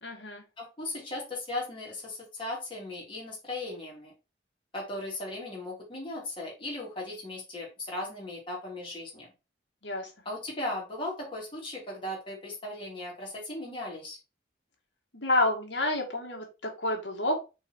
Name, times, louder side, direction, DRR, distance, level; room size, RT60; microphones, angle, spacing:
voice 1, 0.0-0.4 9.8-10.1 15.1-17.4, left 2 dB, 75° left, 2 dB, 2.3 m, -29 dB
voice 2, 0.6-4.1 4.7-9.3 10.2-14.2, left 1 dB, 30° left, -4 dB, 3.4 m, -37 dB
6.2 x 4.4 x 4.6 m, 0.29 s
head